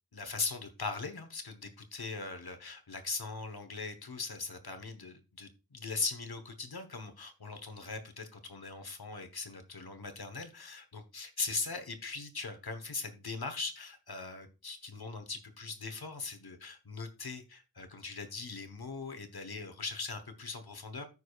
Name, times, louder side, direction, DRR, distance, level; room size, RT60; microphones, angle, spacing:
voice 1, 0.1-21.1, left 4 dB, 75° left, 8 dB, 1.2 m, -40 dB
14.5 x 4.9 x 2.4 m, 0.30 s
wide cardioid pair, 55°, 38 cm